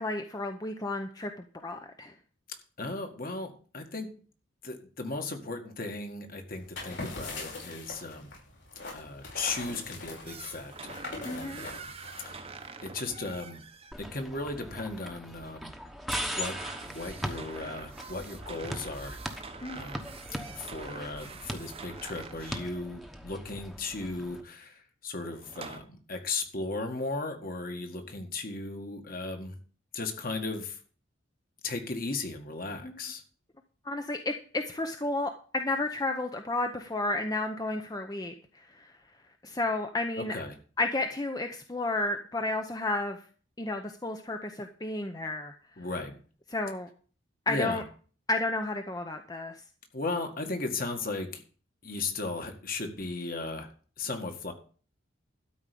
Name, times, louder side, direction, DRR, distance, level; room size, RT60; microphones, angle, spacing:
voice 1, 0.0-2.1 11.2-11.6 19.6-19.8 32.8-32.9 33.8-38.9 39.4-40.4 40.8-43.2 43.6-45.5 46.5-46.9 47.5-47.8 48.3-49.5, left 2 dB, 20° left, 5 dB, 0.7 m, -32 dB
voice 2, 2.8-4.1 4.6-8.3 8.9-11.9 12.3-12.5 12.8-13.6 14.0-15.7 16.3-16.6 16.8-19.2 19.7-20.1 20.5-29.6 29.9-30.8 31.6-33.2 40.2-40.6 45.8-46.2 47.5-47.8 49.9-51.4 51.8-53.7 54.0-54.5, left 3 dB, 50° left, 5 dB, 1.9 m, -36 dB
sound 1, 6.6-12.7, left 3 dB, 65° left, 5.3 m, -41 dB
sound 2, 10.3-13.9 16.2-22.7 25.2-25.8, right 4 dB, 30° right, 0.9 m, -45 dB
sound 3, 13.9-24.4, equal, ahead, 1.1 m, -40 dB
12.5 x 4.8 x 8.4 m, 0.41 s
head